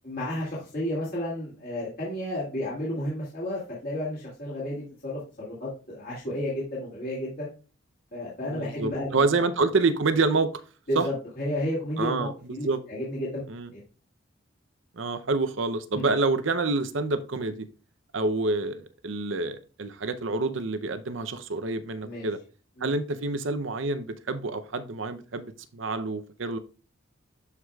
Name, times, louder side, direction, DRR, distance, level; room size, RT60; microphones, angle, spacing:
voice 1, 0.0-7.5 8.1-9.4 10.9-13.4 13.7-13.8 15.9-16.1 22.0-22.3 22.8-22.9, left 1 dB, 45° left, -7 dB, 2.4 m, -32 dB
voice 2, 8.4-10.5 10.9-11.1 12.0-12.8 13.5-13.7 15.0-17.7 18.1-22.4 22.8-26.6, right 3 dB, 70° right, 11 dB, 0.7 m, -27 dB
12.0 x 4.8 x 2.4 m, 0.35 s
head